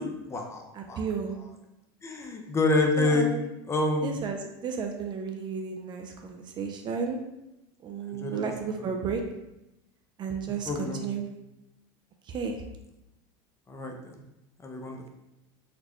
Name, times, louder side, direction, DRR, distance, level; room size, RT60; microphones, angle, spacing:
voice 1, 0.0-1.0 2.0-3.3 3.7-4.1 8.1-8.5 9.0-9.1 10.7-11.1 13.7-14.1 14.6-15.1, left 2 dB, 20° left, 2 dB, 0.5 m, -28 dB
voice 2, 0.7-1.4 3.0-3.5 4.0-7.2 7.8-9.2 10.2-11.3 12.3-12.6, right 5 dB, 35° right, 4 dB, 0.4 m, -33 dB
4.0 x 2.1 x 3.0 m, 0.90 s
supercardioid pair, 110°, 13 cm